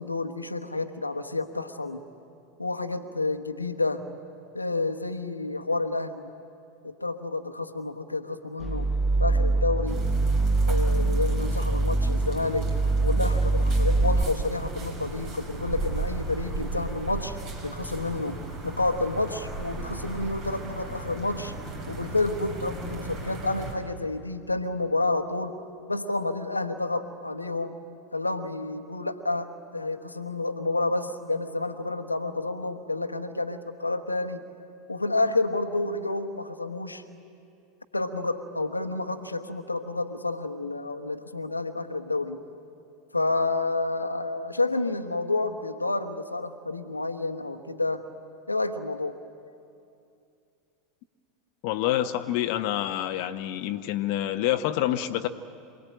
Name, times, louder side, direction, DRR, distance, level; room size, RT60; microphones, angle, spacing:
voice 1, 0.0-2.0 2.6-4.0 4.5-6.2 6.8-8.9 9.2-10.0 10.7-12.7 13.0-17.4 17.6-21.5 21.9-25.6 25.9-27.8 28.1-34.4 34.9-37.0 37.9-42.4 43.1-48.0 48.5-49.1, left 2 dB, 90° left, 7 dB, 1.2 m, -29 dB
sound 1, 8.6-14.2, right 2 dB, 5° left, 0.7 m, -24 dB
sound 2, 9.9-23.7, right 3 dB, 45° right, 5.0 m, -36 dB
voice 2, 51.6-55.3, left 13 dB, 55° left, 7 dB, 0.9 m, -27 dB
27.0 x 18.5 x 8.9 m, 2.6 s
figure-of-eight pair, 85°, 0 cm